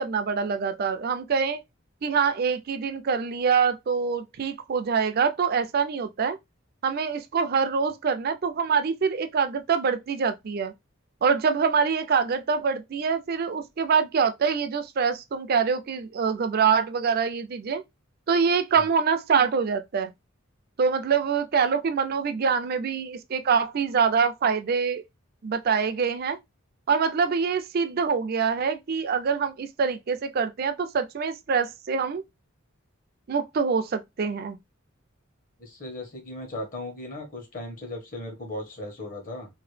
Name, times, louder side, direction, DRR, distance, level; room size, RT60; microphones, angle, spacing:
voice 1, 0.0-1.6 2.0-6.4 6.8-10.7 11.2-17.8 18.3-20.1 20.8-25.0 25.4-26.4 26.9-32.2 33.3-34.6, right 6 dB, 45° right, 0.4 m, -25 dB
voice 2, 35.6-39.5, left 1 dB, 40° left, 1.2 m, -37 dB
2.9 x 2.6 x 3.2 m
head